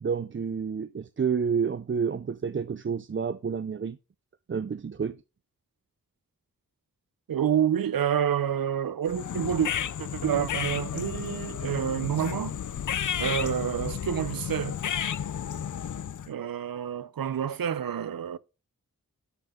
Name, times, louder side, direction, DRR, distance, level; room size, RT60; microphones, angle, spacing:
voice 1, 0.0-4.0 4.5-5.2, right 6 dB, 35° right, 0.5 m, -29 dB
voice 2, 7.3-9.7 10.0-12.6 13.2-14.8 16.3-18.4, right 9 dB, 90° right, 0.6 m, -28 dB
sound 1, 9.1-16.3, left 9 dB, 65° left, 0.5 m, -32 dB
12.5 x 5.5 x 3.7 m
wide cardioid pair, 50°, 34 cm